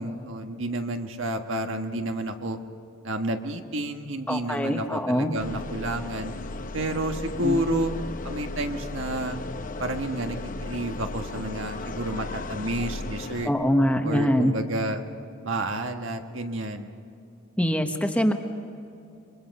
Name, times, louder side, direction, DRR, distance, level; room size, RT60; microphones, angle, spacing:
voice 1, 0.0-2.6 3.0-6.3 6.7-7.9 8.2-9.4 9.8-13.5 14.0-15.0 15.4-16.9, right 1 dB, 65° right, 5 dB, 1.5 m, -30 dB
voice 2, 4.3-5.3 7.4-7.6 13.4-14.5 17.6-18.3, equal, 5° left, 5 dB, 1.0 m, -23 dB
sound 1, 5.4-13.5, left 2 dB, 40° left, 0.7 m, -35 dB
26.5 x 23.5 x 5.4 m, 2.6 s
head